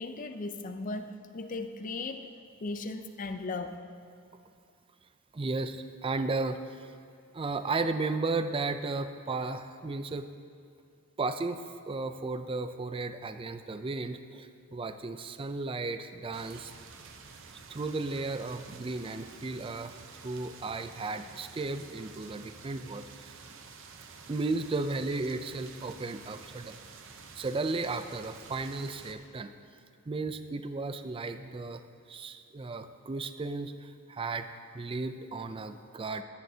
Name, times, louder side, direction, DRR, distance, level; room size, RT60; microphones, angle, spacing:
voice 1, 0.0-2.3 2.6-3.8, left 3 dB, 35° left, 8 dB, 0.5 m, -37 dB
voice 2, 5.3-6.9 7.3-10.3 11.2-16.7 17.7-19.9 20.2-23.3 24.3-26.8 27.3-29.5 30.1-31.8 32.1-34.5 34.7-36.2, right 3 dB, 25° right, 10 dB, 0.4 m, -34 dB
sound 1, 16.3-29.1, right 5 dB, 60° right, 0.8 m, -50 dB
14.0 x 12.0 x 2.8 m, 2.3 s
head